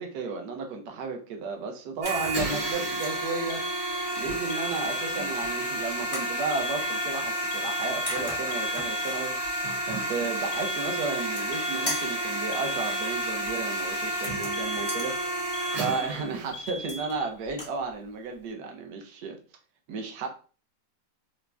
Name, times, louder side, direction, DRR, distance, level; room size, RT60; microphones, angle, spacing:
voice 1, 0.0-3.6 4.2-9.4 9.8-15.5 15.7-19.4 19.9-20.3, right 4 dB, 75° right, 1.2 m, -33 dB
sound 1, 2.0-2.4 2.8-3.2 4.9-5.5 6.1-6.3 7.7-7.8 8.1-9.3 11.0-11.6 11.9-12.2 14.1-15.1 16.7-17.2 17.5-17.8, left 1 dB, 25° left, 0.6 m, -38 dB
sound 2, 2.0-16.5, right 1 dB, 50° right, 1.3 m, -31 dB
Alarm, 2.5-5.5 6.5-9.5 10.5-13.5 14.5-17.5, equal, 80° left, 1.2 m, -40 dB
3.7 x 2.1 x 2.2 m
omnidirectional pair, 1.9 m